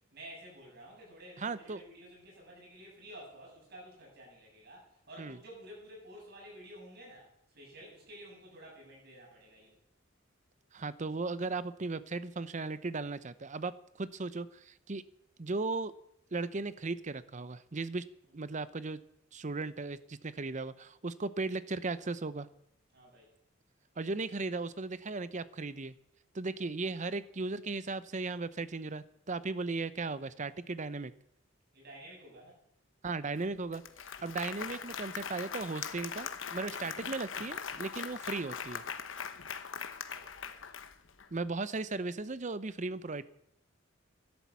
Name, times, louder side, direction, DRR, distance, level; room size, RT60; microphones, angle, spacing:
voice 1, 0.1-9.8 22.9-23.3 26.5-26.6 31.7-32.6 40.1-40.7, equal, 55° right, -1 dB, 7.8 m, -52 dB
voice 2, 1.4-1.8 5.2-5.4 10.7-15.0 15.4-15.9 16.3-18.0 18.3-19.0 19.3-22.5 24.0-25.9 26.3-31.1 33.0-33.8 34.2-38.8 41.3-43.2, right 3 dB, 40° right, 15 dB, 0.7 m, -36 dB
Applause, 33.4-33.5 33.7-41.3, left 7 dB, 80° left, 1.1 m, -41 dB
12.0 x 11.5 x 8.3 m, 0.75 s
head